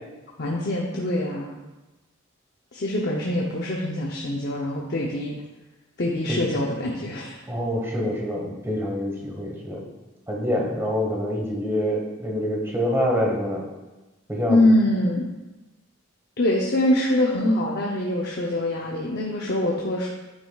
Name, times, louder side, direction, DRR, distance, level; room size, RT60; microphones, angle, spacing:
voice 1, 0.4-1.6 2.7-5.3 6.0-7.4 14.5-15.3 16.4-20.1, left 1 dB, 50° left, -2 dB, 0.7 m, -24 dB
voice 2, 7.5-9.8 10.3-13.6 14.3-14.6, equal, 10° right, -1 dB, 1.2 m, -26 dB
9.2 x 6.7 x 2.4 m, 1.1 s
head